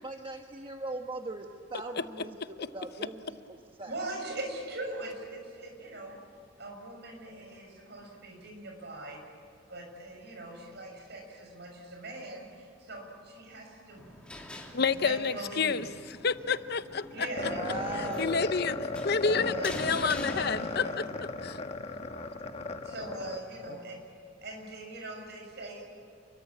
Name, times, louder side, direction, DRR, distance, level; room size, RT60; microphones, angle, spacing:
voice 1, 0.0-3.9 17.4-18.4, right 2 dB, 25° right, 3 dB, 1.2 m, -40 dB
voice 2, 3.8-6.2 6.6-9.2 9.7-14.0 14.9-15.8 17.1-18.2 19.2-20.0 20.3-21.0 22.8-24.0 24.4-25.8, right 2 dB, 60° right, 2 dB, 6.6 m, -41 dB
sound 1, 13.9-21.3, left 1 dB, 5° left, 2.9 m, -45 dB
voice 3, 14.7-17.3 18.0-21.0 21.4-21.6, left 5 dB, 55° left, 12 dB, 0.8 m, -29 dB
sound 2, 17.4-23.8, left 3 dB, 30° left, 1.4 m, -36 dB
28.5 x 22.5 x 8.7 m, 2.5 s
head